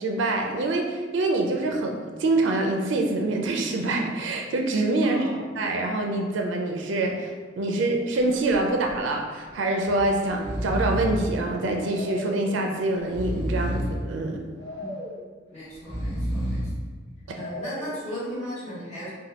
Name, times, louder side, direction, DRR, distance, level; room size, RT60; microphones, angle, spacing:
voice 1, 0.0-5.3 5.6-14.4 17.3-17.4, right 2 dB, 80° right, 2 dB, 0.4 m, -25 dB
voice 2, 5.0-5.4 14.8-14.9 15.5-16.7 17.3-19.1, equal, 40° left, -9 dB, 1.4 m, -36 dB
Breathing, 8.2-8.5 8.9-9.0 9.8-10.0 10.3-11.3 11.9-12.5 13.0-14.0 14.6-15.2 15.7-16.8 17.3-18.0, equal, 15° left, 1.1 m, -30 dB
4.2 x 2.2 x 2.8 m, 1.4 s
head